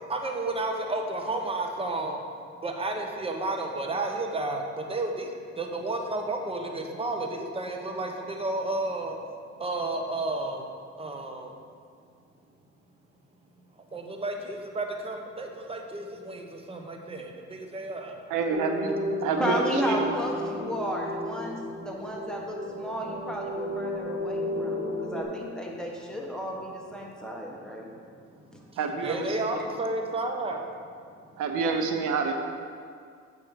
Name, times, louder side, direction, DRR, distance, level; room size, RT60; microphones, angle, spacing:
voice 1, 0.1-2.2 2.6-5.3 5.6-9.2 9.6-10.6 11.0-11.5 13.9-18.1 18.8-19.0 29.0-30.6, right 2 dB, 20° right, 3 dB, 0.9 m, -32 dB
voice 2, 18.3-18.9 19.2-20.0 28.8-29.6 31.4-32.3, right 5 dB, 85° right, 4 dB, 0.8 m, -28 dB
sound 1, 18.5-25.2, left 1 dB, 40° right, 1.5 m, -33 dB
voice 3, 19.4-27.9, equal, ahead, -2 dB, 1.4 m, -33 dB
7.5 x 6.1 x 5.0 m, 2.2 s
cardioid pair, 90°, 30 cm